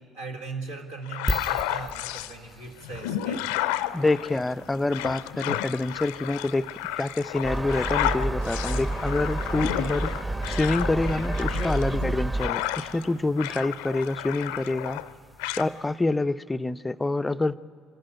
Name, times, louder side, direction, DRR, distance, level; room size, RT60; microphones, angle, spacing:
voice 1, 0.1-3.6, right 4 dB, 70° right, 2 dB, 2.0 m, -39 dB
sound 1, 1.1-2.3 2.8-13.1 13.4-15.1 15.4-15.7, left 13 dB, 70° left, 0.5 m, -32 dB
sound 2, 1.3-16.0, left 1 dB, ahead, 0.8 m, -42 dB
voice 2, 3.9-15.0 15.6-17.6, left 2 dB, 15° left, 12 dB, 0.5 m, -27 dB
Gull seagull, 7.4-12.5, right 2 dB, 20° right, 1.3 m, -29 dB
24.0 x 14.0 x 10.0 m, 2.5 s
figure-of-eight pair, 50°, 0 cm